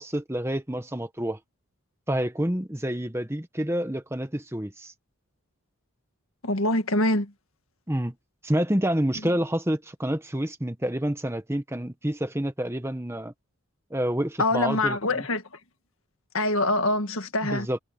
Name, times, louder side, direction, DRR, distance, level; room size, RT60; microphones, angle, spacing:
voice 1, 0.0-1.4 2.1-4.9 7.9-8.1 8.4-13.3 13.9-15.2 17.4-17.8, right 1 dB, 10° right, 1.2 m, -28 dB
voice 2, 6.4-7.3 14.4-15.4 16.3-17.7, left 2 dB, 65° left, 1.9 m, -24 dB
head